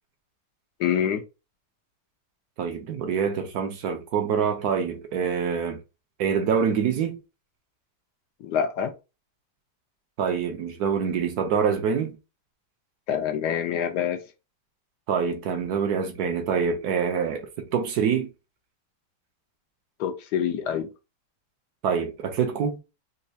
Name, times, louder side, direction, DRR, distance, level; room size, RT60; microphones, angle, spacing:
voice 1, 0.8-1.2 8.4-8.9 13.1-14.2 20.0-20.9, left 8 dB, 80° left, 1.3 m, -26 dB
voice 2, 2.6-5.8 6.2-7.2 10.2-12.2 15.1-18.3 21.8-22.8, right 6 dB, 70° right, 1.2 m, -25 dB
4.3 x 2.3 x 2.8 m
omnidirectional pair, 1.8 m